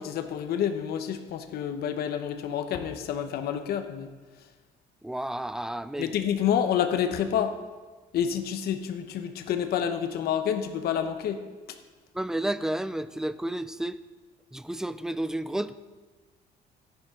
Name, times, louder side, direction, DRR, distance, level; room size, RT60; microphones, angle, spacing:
voice 1, 0.0-4.1 6.0-7.5 8.1-11.4, left 9 dB, 70° left, 7 dB, 1.0 m, -28 dB
voice 2, 5.0-6.1 12.1-14.0 14.5-15.7, right 1 dB, 5° right, 13 dB, 0.5 m, -31 dB
14.5 x 10.5 x 3.8 m, 1.3 s
cardioid pair, 110°, 17 cm